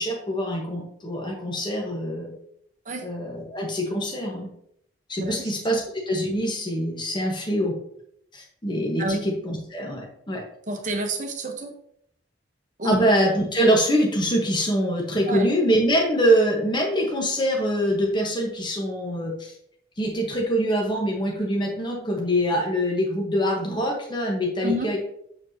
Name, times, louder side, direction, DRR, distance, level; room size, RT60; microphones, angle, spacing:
voice 1, 0.0-2.3 3.0-4.5 5.1-7.7 8.3-10.4 12.8-19.5 20.0-25.0, equal, 25° left, -1 dB, 1.1 m, -24 dB
voice 2, 5.2-5.8 9.0-9.2 10.7-11.7 12.8-13.0 15.3-15.5 24.6-24.9, right 1 dB, 40° right, 4 dB, 1.0 m, -29 dB
6.8 x 6.2 x 2.8 m, 0.70 s
head